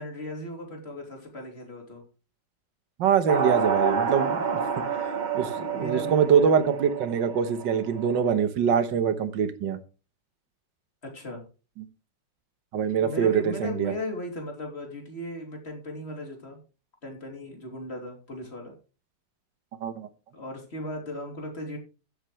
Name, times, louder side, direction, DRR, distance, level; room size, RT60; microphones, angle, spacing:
voice 1, 0.0-2.1 4.6-4.8 5.7-6.7 11.0-11.4 13.0-16.6 17.0-18.7 20.3-21.8, equal, 35° left, 2 dB, 3.1 m, -37 dB
voice 2, 3.0-4.5 5.3-9.8 11.8-11.9 12.7-13.9 19.8-20.1, right 7 dB, 85° right, 11 dB, 1.8 m, -24 dB
sound 1, 3.3-8.3, right 5 dB, 40° right, 0.7 m, -29 dB
15.0 x 8.1 x 3.1 m, 0.33 s
omnidirectional pair, 1.9 m